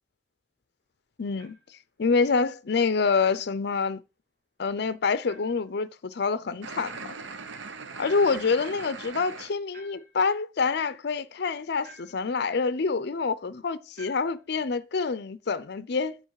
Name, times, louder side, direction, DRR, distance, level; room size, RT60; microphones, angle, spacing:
voice 1, 1.2-1.6 2.0-4.0 4.6-7.1 8.0-16.2, left 4 dB, 60° left, 0.5 m, -27 dB
sound 1, 1.4-1.7 3.2-3.4 5.3-5.7 8.0-8.6 9.7-10.3 11.8-12.4 13.9-14.5, right 3 dB, 50° right, 3.0 m, -51 dB
sound 2, 6.6-9.5, right 4 dB, 85° right, 0.8 m, -40 dB
8.0 x 5.2 x 4.7 m
head